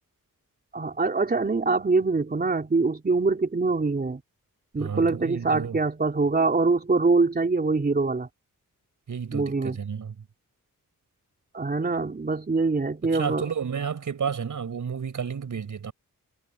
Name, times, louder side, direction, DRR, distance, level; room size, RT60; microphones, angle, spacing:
voice 1, 0.7-4.2 4.7-8.3 9.3-9.8 11.5-13.4, right 3 dB, 30° right, 3.9 m, -24 dB
voice 2, 4.8-5.8 9.1-10.3 13.0-15.9, right 7 dB, 65° right, 5.4 m, -31 dB
wide cardioid pair, 150°, 33 cm